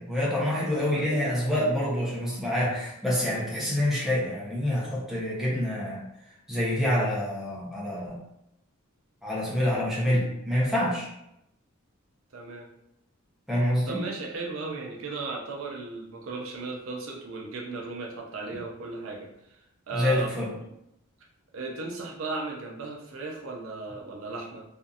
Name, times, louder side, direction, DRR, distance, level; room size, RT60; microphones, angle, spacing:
voice 1, 0.0-6.0 6.5-8.2 9.2-11.1 13.5-14.0 19.9-20.5, left 1 dB, ahead, -7 dB, 0.7 m, -27 dB
voice 2, 12.3-12.7 13.9-20.3 20.6-20.7 21.5-24.6, right 3 dB, 70° right, -1 dB, 0.5 m, -36 dB
2.7 x 2.4 x 2.4 m, 0.82 s
head